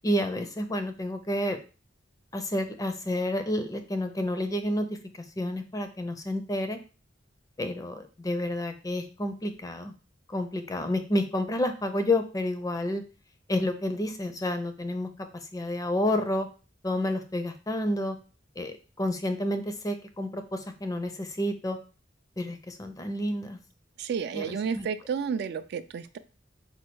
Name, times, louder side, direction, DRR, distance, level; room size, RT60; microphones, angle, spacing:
voice 1, 0.0-1.6 2.3-5.0 5.4-6.8 7.6-9.9 10.3-13.0 13.5-15.1 15.5-16.5 16.8-18.2 18.6-21.8 22.4-23.6 24.3-24.9, left 1 dB, 20° left, 7 dB, 0.5 m, -30 dB
voice 2, 24.0-26.2, right 6 dB, 60° right, 11 dB, 0.3 m, -31 dB
4.3 x 2.3 x 4.5 m, 0.34 s
head